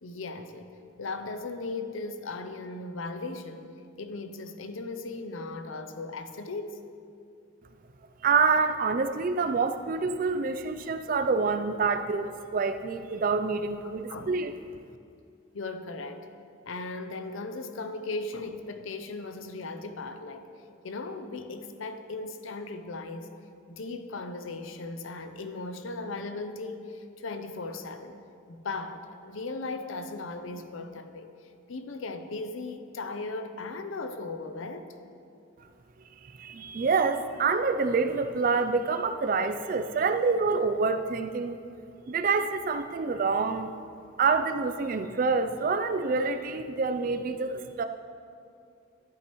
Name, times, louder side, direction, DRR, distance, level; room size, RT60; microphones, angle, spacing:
voice 1, 0.0-3.6 4.0-6.8 14.1-14.3 15.5-16.3 16.7-20.5 20.8-23.3 23.7-28.2 28.5-34.9, left 3 dB, 70° left, 8 dB, 0.6 m, -37 dB
voice 2, 8.2-14.5 36.2-41.6 42.1-43.7 44.2-47.9, right 4 dB, 40° right, 9 dB, 0.3 m, -27 dB
12.5 x 11.5 x 3.1 m, 2.5 s
head